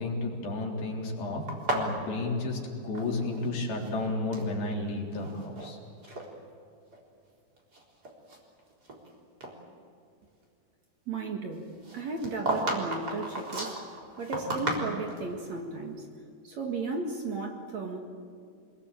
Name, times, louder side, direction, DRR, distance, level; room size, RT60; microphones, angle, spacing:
voice 1, 0.0-1.4 1.7-5.8, left 2 dB, 65° left, 0 dB, 5.5 m, -32 dB
sound 1, 1.5-3.5 3.7-4.5 5.1-5.7 6.0-6.3 6.9-7.0 7.6-9.1 9.4-9.5 11.8-15.3, right 1 dB, 25° right, 4.1 m, -34 dB
voice 2, 11.1-13.8 14.2-16.1 16.4-18.0, right 3 dB, 50° right, 3 dB, 2.8 m, -35 dB
26.5 x 21.5 x 8.8 m, 2.5 s
omnidirectional pair, 4.6 m